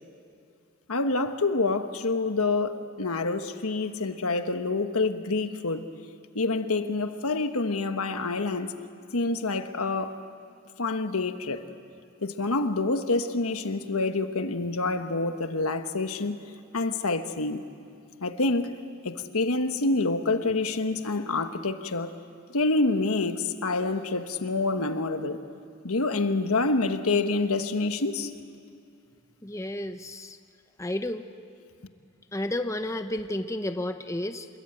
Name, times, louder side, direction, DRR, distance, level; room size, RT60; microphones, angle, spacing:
voice 1, 0.9-5.8 6.3-8.7 9.1-10.2 10.8-11.6 12.2-16.3 16.7-17.6 18.2-18.7 19.0-22.1 22.5-25.4 25.8-28.3, left 3 dB, 80° left, 8 dB, 1.3 m, -27 dB
voice 2, 29.4-30.4 30.8-31.3 32.3-34.5, left 1 dB, 15° left, 8 dB, 0.6 m, -31 dB
28.0 x 21.5 x 8.9 m, 2.5 s
head